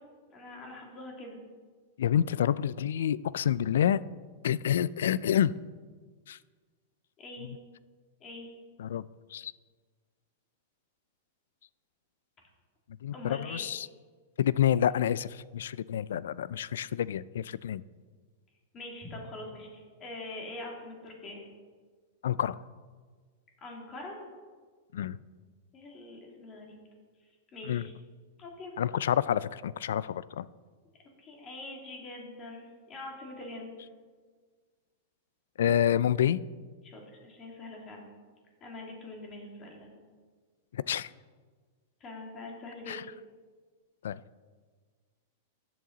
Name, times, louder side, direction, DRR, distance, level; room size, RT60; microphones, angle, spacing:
voice 1, 0.3-1.4 7.2-7.5 8.2-8.5 13.1-13.6 18.7-21.4 23.6-24.2 25.7-26.8 27.5-27.9 28.4-28.8 31.2-33.7 36.8-38.1 38.6-39.9 42.0-43.0, left 2 dB, 25° left, 0 dB, 2.5 m, -43 dB
voice 2, 2.0-4.0 4.4-5.5 6.3-6.4 8.8-9.1 9.3-9.5 13.0-13.9 14.4-17.8 22.2-22.6 24.9-25.2 27.7-27.8 28.8-30.5 35.6-36.4 40.7-41.1 42.9-43.0 44.0-44.2, left 10 dB, 80° left, 19 dB, 0.3 m, -28 dB
14.0 x 7.7 x 3.9 m, 1.5 s
supercardioid pair, 145°, 0 cm